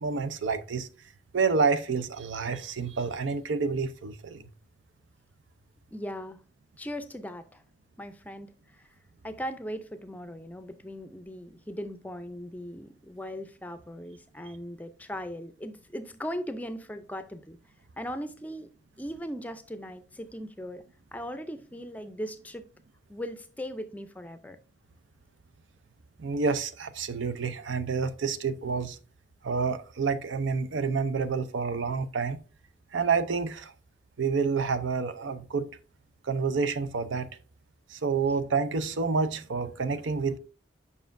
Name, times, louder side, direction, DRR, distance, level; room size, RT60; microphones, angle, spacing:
voice 1, 0.0-0.9 1.3-4.4 26.2-29.0 29.4-32.4 32.9-33.7 34.2-35.7 36.2-37.3 37.9-40.4, right 5 dB, 90° right, 0.6 m, -28 dB
voice 2, 5.9-6.4 6.8-7.6 8.0-8.9 9.2-17.6 18.0-18.7 19.0-20.8 21.1-22.6 23.1-24.6, equal, 10° left, 0.4 m, -38 dB
7.1 x 5.5 x 2.5 m
head